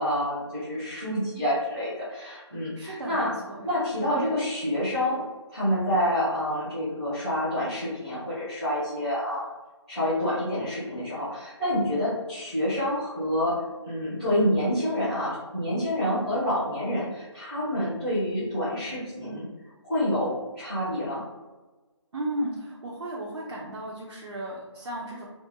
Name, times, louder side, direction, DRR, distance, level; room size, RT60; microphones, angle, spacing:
voice 1, 0.0-3.3 3.6-5.2 5.5-9.5 9.9-13.6 13.8-19.4 19.8-21.2, equal, ahead, -19 dB, 0.7 m, -28 dB
voice 2, 2.7-3.7 4.1-4.3 22.1-25.3, right 1 dB, 65° right, -3 dB, 0.5 m, -34 dB
2.8 x 2.1 x 2.2 m, 1.2 s
figure-of-eight pair, 170°, 16 cm